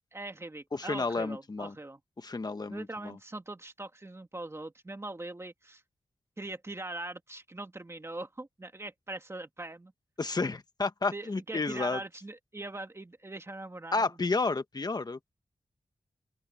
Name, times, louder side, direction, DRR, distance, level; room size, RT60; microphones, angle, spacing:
voice 1, 0.1-2.0 2.7-5.8 6.4-9.9 11.1-14.1, right 2 dB, 25° right, 2.1 m, -41 dB
voice 2, 0.7-1.7 2.2-3.2 10.2-12.0 13.9-15.3, left 3 dB, 40° left, 1.3 m, -31 dB
open air
wide cardioid pair, 95°, 11 cm